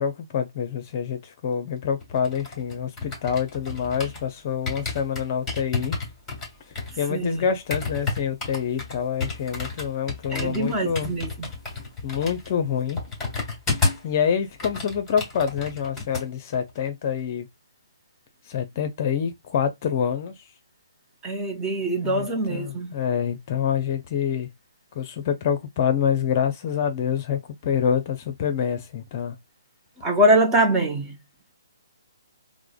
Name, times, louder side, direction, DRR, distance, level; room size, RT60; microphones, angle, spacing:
voice 1, 0.0-6.0 7.0-11.1 12.0-13.0 14.0-17.5 18.5-20.3 22.0-24.5 24.9-29.4, left 7 dB, 35° left, 0.6 m, -26 dB
sound 1, 2.0-4.3 4.7-14.1 14.4-16.3 16.5-16.8, left 4 dB, 5° left, 1.5 m, -31 dB
voice 2, 7.1-7.4 10.3-11.5 21.2-23.0 30.0-31.2, right 1 dB, 15° right, 0.7 m, -23 dB
4.7 x 2.1 x 2.2 m
figure-of-eight pair, 140°, 2 cm